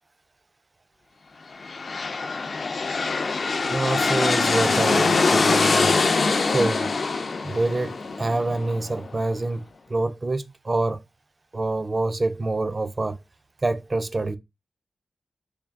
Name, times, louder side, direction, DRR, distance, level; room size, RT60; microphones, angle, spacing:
sound 1, 1.5-9.2, left 4 dB, 50° left, 0.3 m, -23 dB
voice 1, 3.7-5.9 6.5-6.9 7.4-9.6 9.9-11.0 11.5-13.2 13.6-14.4, right 2 dB, 30° right, 0.4 m, -26 dB
3.4 x 2.7 x 3.4 m
wide cardioid pair, 120°, 0 cm